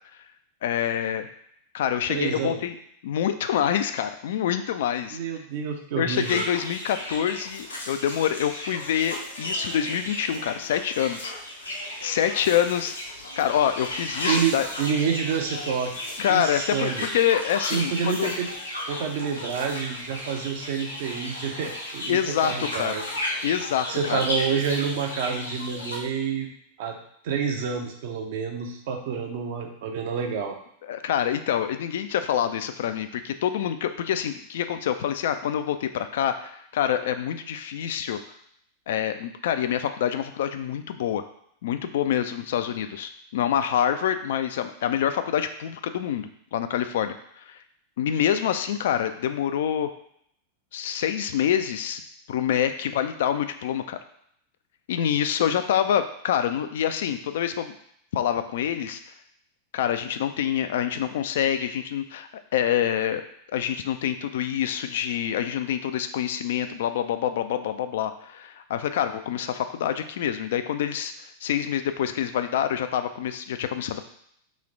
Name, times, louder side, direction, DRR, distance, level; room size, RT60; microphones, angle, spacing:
voice 1, 0.6-1.3 1.7-2.7 3.0-5.2 6.0-11.3 12.0-12.9 13.4-14.7 16.2-18.3 22.1-22.9 23.4-24.2 30.9-38.2 38.9-41.2 41.6-47.6 48.0-49.9 50.7-52.0 52.3-54.0 54.9-57.7 58.1-59.0 59.7-63.2 63.5-71.1 71.4-74.0, left 9 dB, 55° left, 9 dB, 0.3 m, -26 dB
voice 2, 2.1-2.6 5.1-6.4 14.3-15.9 16.3-17.1 17.7-18.5 18.9-23.0 23.9-26.5 26.8-27.0 27.2-30.6, right 6 dB, 50° right, 3 dB, 0.6 m, -28 dB
sound 1, 6.1-26.0, left 1 dB, 80° left, 0.8 m, -34 dB
3.2 x 3.1 x 3.7 m, 0.69 s
figure-of-eight pair, 90°, 0 cm